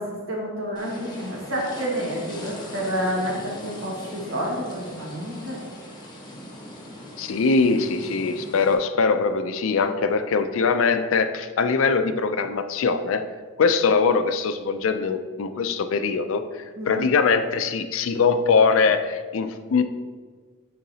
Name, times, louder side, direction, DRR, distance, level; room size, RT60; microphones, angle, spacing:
voice 1, 0.0-5.6 16.8-17.1, equal, 70° right, -3 dB, 1.6 m, -29 dB
sound 1, 0.8-8.8, left 1 dB, 20° left, 1.0 m, -40 dB
voice 2, 7.2-13.3 13.6-19.8, left 4 dB, 70° left, 10 dB, 0.4 m, -22 dB
9.3 x 3.9 x 2.8 m, 1.5 s
head